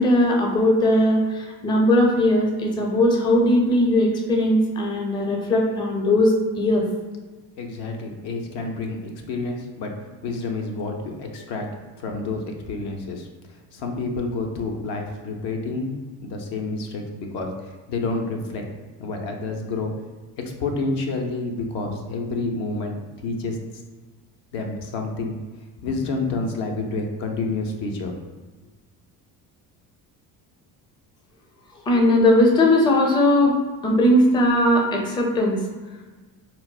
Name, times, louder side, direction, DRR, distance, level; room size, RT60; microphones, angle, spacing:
voice 1, 0.0-6.8 31.9-35.6, left 1 dB, 10° left, 0 dB, 0.4 m, -19 dB
voice 2, 7.6-9.9 10.2-11.7 12.0-15.9 16.2-18.6 19.0-19.9 20.4-23.6 24.5-25.3 25.8-28.1, left 3 dB, 65° left, 2 dB, 0.7 m, -29 dB
3.9 x 2.1 x 2.3 m, 1.3 s
supercardioid pair, 75°, 45 cm